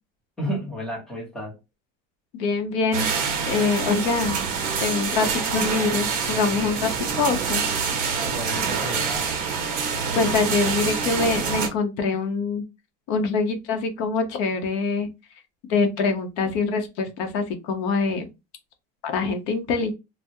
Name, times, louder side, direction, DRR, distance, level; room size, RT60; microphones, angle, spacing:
voice 1, 0.4-1.5 8.3-9.3, equal, ahead, 0.7 m, -32 dB
voice 2, 2.3-3.1 3.5-4.4 4.8-7.6 10.1-12.6 13.1-15.1 15.7-18.3 19.0-19.9, left 4 dB, 70° left, 0.7 m, -24 dB
sound 1, 2.9-11.7, right 6 dB, 40° right, 0.7 m, -26 dB
3.4 x 2.0 x 2.6 m
cardioid pair, 175°, 21 cm